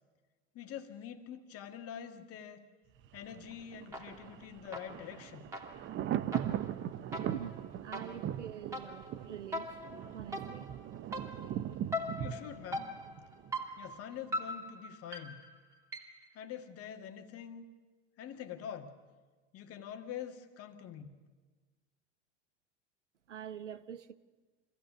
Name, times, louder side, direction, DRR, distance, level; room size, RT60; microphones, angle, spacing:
voice 1, 0.5-2.7 3.1-5.5 12.2-13.0 13.8-15.4 16.3-17.6 18.2-18.9 19.5-21.1, left 9 dB, 40° left, 1.9 m, -45 dB
Thunder, 3.0-13.9 14.2-14.3, right 11 dB, 35° right, 0.7 m, -40 dB
sound 1, 3.9-4.4 4.7-16.3, left 1 dB, 10° right, 2.7 m, -42 dB
voice 2, 7.2-9.8 10.1-10.7 23.3-24.1, right 9 dB, 85° right, 0.9 m, -45 dB
25.0 x 15.0 x 7.0 m
hypercardioid pair, 85°, 35 cm